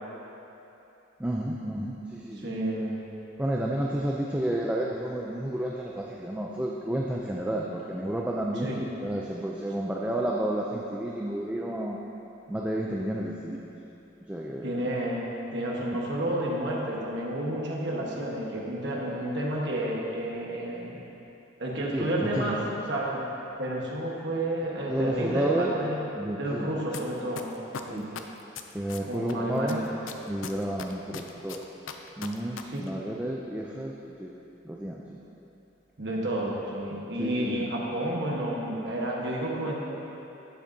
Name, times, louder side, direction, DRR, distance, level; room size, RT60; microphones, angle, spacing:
voice 1, 1.2-2.6 3.4-12.0 12.5-13.6 14.3-14.9 21.9-22.6 24.9-25.8 26.2-26.7 27.9-28.1 28.7-29.9 30.3-31.7 32.2-33.9 34.2-34.3 34.6-35.2 37.1-37.7, right 1 dB, 5° right, -3 dB, 0.4 m, -31 dB
voice 2, 2.4-3.0 8.6-8.8 14.6-21.0 21.6-22.6 22.9-23.2 23.6-26.1 26.4-27.5 27.9-28.1 29.0-29.8 32.6-32.9 36.0-39.8, right 1 dB, 60° right, -3 dB, 1.2 m, -30 dB
sound 1, 26.9-27.0 27.4-29.3 29.7-32.6 32.9-33.0, left 7 dB, 80° left, 0.5 m, -38 dB
11.5 x 7.6 x 2.7 m, 3.0 s
head